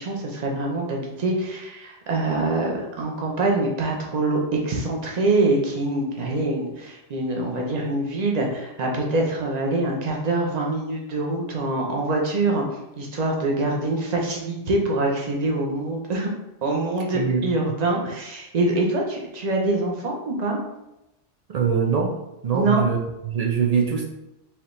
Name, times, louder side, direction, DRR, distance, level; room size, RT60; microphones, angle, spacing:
voice 1, 0.0-12.6 13.0-16.3 16.6-20.6 22.5-22.8, right 2 dB, 40° right, -1 dB, 0.8 m, -24 dB
voice 2, 21.5-22.1 22.4-23.0 23.3-24.0, right 6 dB, 70° right, 1 dB, 0.3 m, -22 dB
4.9 x 2.8 x 3.2 m, 0.92 s
omnidirectional pair, 1.2 m